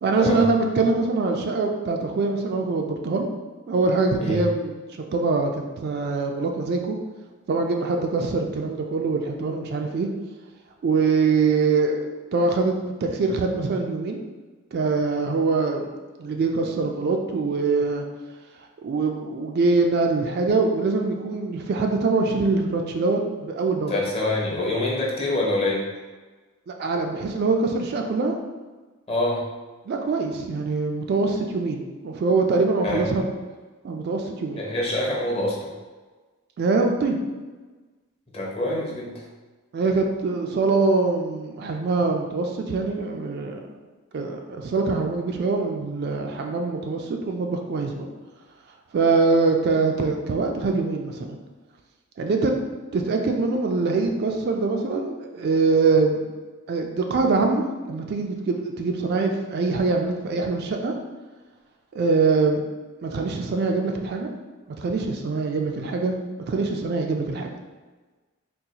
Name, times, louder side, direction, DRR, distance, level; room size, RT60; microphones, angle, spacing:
voice 1, 0.0-3.3 3.7-7.0 7.5-10.1 10.8-14.2 14.7-15.9 16.2-18.0 18.8-23.9 26.7-28.3 29.9-33.2 33.8-34.6 36.6-37.2 39.7-43.6 44.1-48.1 48.9-51.4 52.2-52.5 52.9-56.2 56.7-57.6 57.9-60.9 61.9-62.6 63.0-64.3 64.8-66.2 66.5-67.5, right 3 dB, 50° right, 3 dB, 0.3 m, -23 dB
voice 2, 23.9-25.9 29.1-29.4 32.8-33.1 34.6-35.7 38.3-39.2, left 1 dB, 25° left, -4 dB, 0.7 m, -25 dB
3.8 x 2.3 x 2.8 m, 1.3 s
head